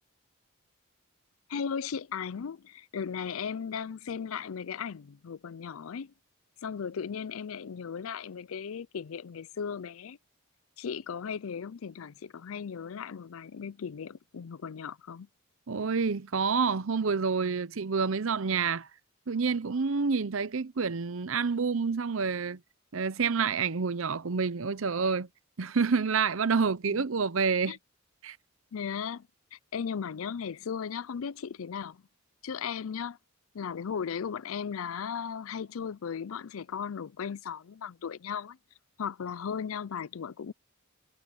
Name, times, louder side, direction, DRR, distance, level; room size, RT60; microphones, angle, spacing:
voice 1, 1.5-6.1 6.6-10.2 10.8-15.3 26.9-27.0 27.7-27.8 28.7-32.0 32.4-33.2 33.5-38.6 39.0-40.5, left 7 dB, 75° left, 0.5 m, -36 dB
voice 2, 15.7-18.9 19.3-22.6 22.9-25.3 25.6-27.8 28.2-28.4, right 5 dB, 70° right, 0.7 m, -28 dB
head